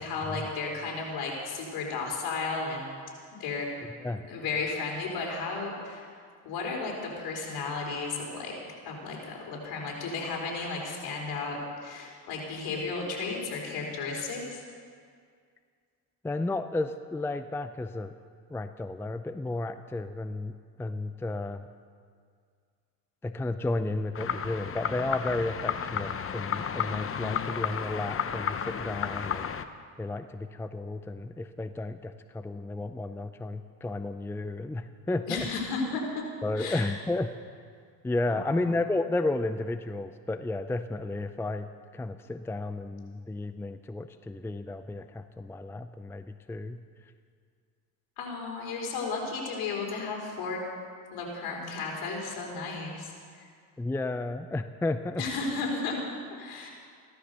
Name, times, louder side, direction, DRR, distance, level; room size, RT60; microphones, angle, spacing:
voice 1, 0.0-3.0 3.3-3.7 4.3-6.1 6.4-8.6 8.8-14.6 35.3-36.0 36.5-36.9 38.3-38.7 48.2-50.6 51.1-53.5 55.2-56.0 56.3-56.7, left 4 dB, 65° left, -1 dB, 4.7 m, -34 dB
voice 2, 16.2-18.1 18.5-20.5 20.8-21.7 23.2-29.5 30.0-35.5 36.4-37.3 38.0-41.7 41.9-46.8 53.8-55.2, left 2 dB, 5° left, 10 dB, 0.5 m, -32 dB
sound 1, 24.1-29.6, left 7 dB, 35° left, 0.9 m, -32 dB
16.0 x 13.0 x 6.9 m, 2.1 s
cardioid pair, 100°, 40 cm